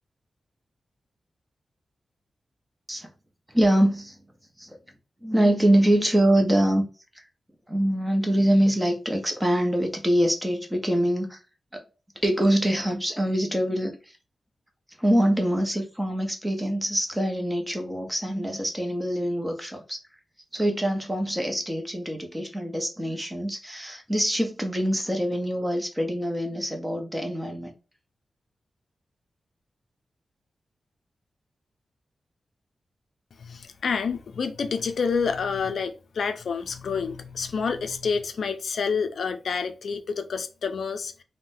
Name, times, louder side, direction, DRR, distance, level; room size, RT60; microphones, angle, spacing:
voice 1, 3.5-4.2 4.6-4.8 5.2-6.9 7.1-7.2 7.7-11.4 11.7-11.8 12.2-14.0 15.0-20.0 20.5-27.7, right 1 dB, 10° right, 0.7 m, -24 dB
voice 2, 33.4-41.2, left 5 dB, 70° left, 0.4 m, -28 dB
3.6 x 2.1 x 2.6 m
wide cardioid pair, 155°, 0 cm